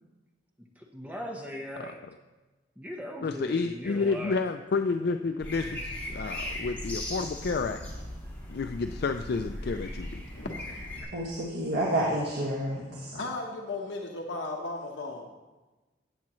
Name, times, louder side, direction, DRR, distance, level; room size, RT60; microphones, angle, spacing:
voice 1, 0.8-2.0 2.8-4.4, equal, 10° right, 0 dB, 1.0 m, -39 dB
voice 2, 3.2-7.8 8.5-10.2, left 4 dB, 55° left, 7 dB, 0.4 m, -30 dB
sound 1, 5.4-11.0, left 1 dB, 10° left, 2.3 m, -38 dB
voice 3, 10.3-11.1 11.7-11.8 13.1-15.3, left 2 dB, 75° left, 0 dB, 1.1 m, -36 dB
voice 4, 11.1-13.2, right 1 dB, 70° right, -5 dB, 1.8 m, -29 dB
16.0 x 8.5 x 3.1 m, 1.2 s
head